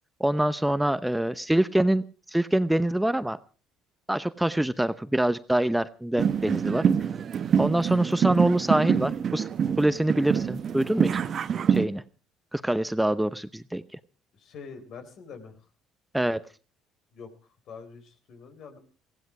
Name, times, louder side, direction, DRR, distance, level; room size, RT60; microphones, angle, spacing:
voice 1, 0.2-3.4 4.1-6.9 7.6-9.5 9.8-11.2 11.7-12.0 12.5-13.8 16.1-16.4, right 1 dB, 5° right, 13 dB, 0.8 m, -25 dB
sound 1, 6.2-11.9, right 7 dB, 50° right, 1.1 m, -26 dB
voice 2, 14.3-15.6 17.1-17.3 17.7-18.8, left 5 dB, 60° left, 8 dB, 3.9 m, -44 dB
18.5 x 15.5 x 4.9 m, 0.38 s
supercardioid pair, 75°, 0 cm